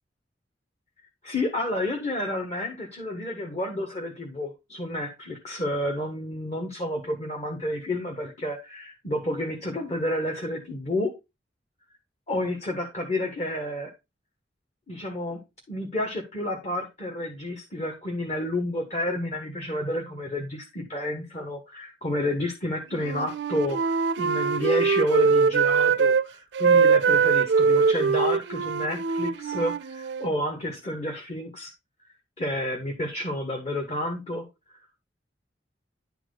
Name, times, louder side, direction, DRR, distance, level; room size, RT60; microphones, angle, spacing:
voice 1, 1.2-11.1 12.3-13.9 14.9-15.4 15.7-31.7 32.4-34.8, left 1 dB, 35° left, 1 dB, 1.5 m, -30 dB
Wind instrument woodwind instrument, 23.0-26.2 26.5-30.3, right 5 dB, 70° right, 0.4 m, -22 dB
10.5 x 4.6 x 3.9 m, 0.24 s
head